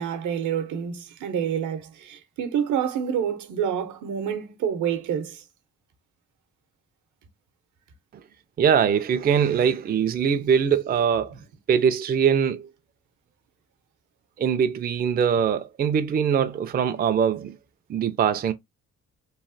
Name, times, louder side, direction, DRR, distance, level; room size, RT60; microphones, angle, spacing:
voice 1, 0.0-5.4, right 8 dB, 80° right, 0.8 m, -28 dB
voice 2, 8.6-11.3 11.7-12.7 14.4-17.5 17.9-18.5, right 7 dB, 30° right, 0.4 m, -22 dB
3.1 x 2.3 x 2.5 m
cardioid pair, 90°, 30 cm